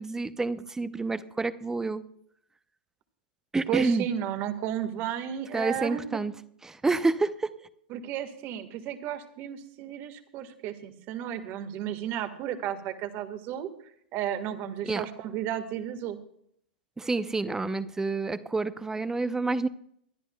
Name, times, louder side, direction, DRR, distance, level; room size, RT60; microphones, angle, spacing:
voice 1, 0.0-2.0 3.5-4.0 5.5-6.3 6.6-7.5 14.8-15.0 17.0-19.7, right 3 dB, 10° right, 14 dB, 0.7 m, -28 dB
voice 2, 3.7-6.2 7.9-13.7 14.1-16.2, right 10 dB, 45° right, 9 dB, 1.6 m, -33 dB
24.5 x 11.0 x 2.3 m, 0.69 s
hypercardioid pair, 115°, 5 cm